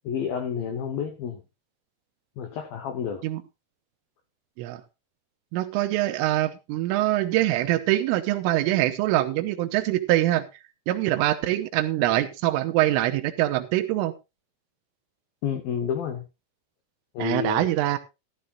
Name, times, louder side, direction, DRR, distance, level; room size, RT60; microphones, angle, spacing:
voice 1, 0.0-1.4 2.4-3.2 15.4-16.3 17.1-17.7, left 7 dB, 90° left, 8 dB, 2.0 m, -30 dB
voice 2, 5.5-10.5 10.9-14.1 17.2-18.0, right 15 dB, 85° right, 8 dB, 3.4 m, -24 dB
13.5 x 13.5 x 2.5 m, 0.25 s
omnidirectional pair, 5.9 m